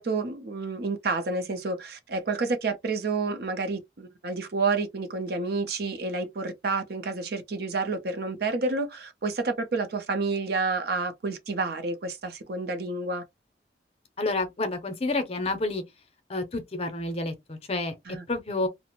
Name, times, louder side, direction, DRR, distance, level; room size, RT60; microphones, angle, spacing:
voice 1, 0.0-13.2 18.1-18.2, right 3 dB, 60° right, 0.6 m, -29 dB
voice 2, 14.2-15.8 16.3-17.9 18.3-18.7, left 2 dB, 35° left, 0.6 m, -29 dB
2.5 x 2.0 x 2.9 m
head